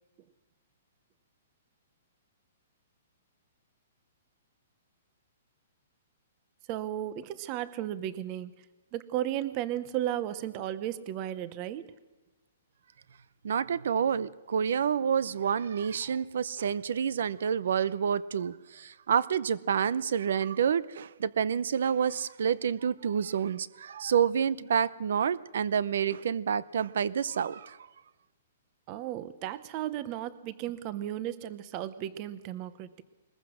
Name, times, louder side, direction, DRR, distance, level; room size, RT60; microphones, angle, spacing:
voice 1, 6.7-8.5 8.9-11.9 28.9-33.0, right 12 dB, 25° right, 0.8 m, -34 dB
voice 2, 13.4-27.8, right 7 dB, 65° right, 0.7 m, -28 dB
21.5 x 21.5 x 6.4 m
hypercardioid pair, 175°, 0 cm